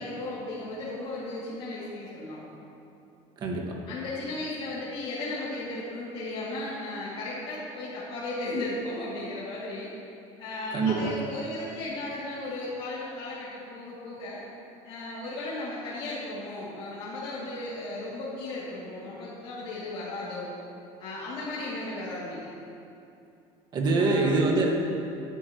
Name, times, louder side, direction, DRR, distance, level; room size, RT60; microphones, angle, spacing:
voice 1, 0.0-2.4 3.9-9.9 10.4-14.4 14.8-20.5 21.0-22.4 24.0-24.4, left 2 dB, 50° left, -8 dB, 2.6 m, -35 dB
voice 2, 3.4-3.8 10.7-11.1 23.7-24.7, right 3 dB, 40° right, 0 dB, 1.8 m, -24 dB
16.0 x 10.0 x 3.1 m, 2.7 s
cardioid pair, 140°, 12 cm